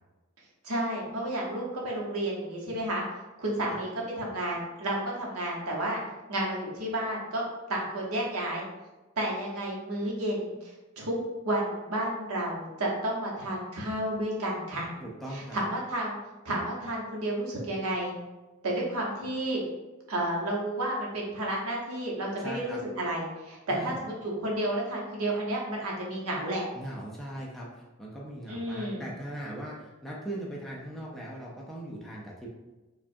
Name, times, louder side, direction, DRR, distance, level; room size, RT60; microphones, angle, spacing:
voice 1, 0.6-3.0 3.4-3.9 4.2-6.0 6.3-7.4 7.7-8.6 9.2-11.2 11.4-14.9 15.3-16.2 16.4-18.1 18.6-19.6 20.1-26.7 28.5-29.1, right 1 dB, 85° right, -2 dB, 1.0 m, -31 dB
voice 2, 15.0-15.6 22.4-22.8 23.7-23.9 26.7-32.5, right 1 dB, ahead, -4 dB, 0.4 m, -39 dB
4.8 x 2.3 x 2.6 m, 1.1 s
head